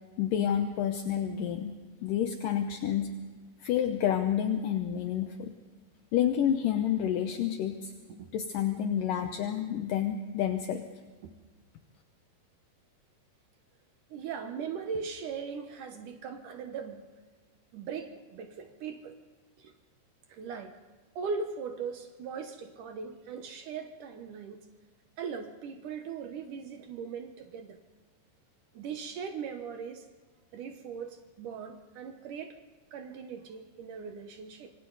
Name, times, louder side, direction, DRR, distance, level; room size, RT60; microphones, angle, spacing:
voice 1, 0.2-3.1 3.6-5.5 6.1-7.9 8.3-10.9, left 9 dB, 75° left, 6 dB, 2.0 m, -29 dB
voice 2, 14.1-17.1 17.7-19.2 19.6-19.7 20.3-20.8 21.2-24.6 25.2-27.8 28.7-30.1 30.5-32.6 32.9-34.7, right 6 dB, 70° right, 6 dB, 2.0 m, -39 dB
26.5 x 25.5 x 4.0 m, 1.4 s
omnidirectional pair, 5.0 m